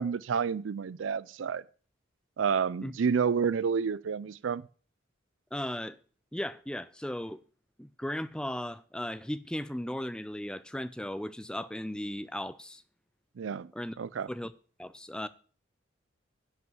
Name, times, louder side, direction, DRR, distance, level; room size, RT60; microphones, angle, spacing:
voice 1, 0.0-1.6 2.4-4.6 13.4-13.7 14.0-14.3, right 6 dB, 85° right, 0.4 m, -29 dB
voice 2, 5.5-6.0 6.3-7.4 7.8-12.8 13.7-14.0 14.3-14.5 14.8-15.3, left 1 dB, 5° left, 0.5 m, -36 dB
11.0 x 5.6 x 7.8 m
head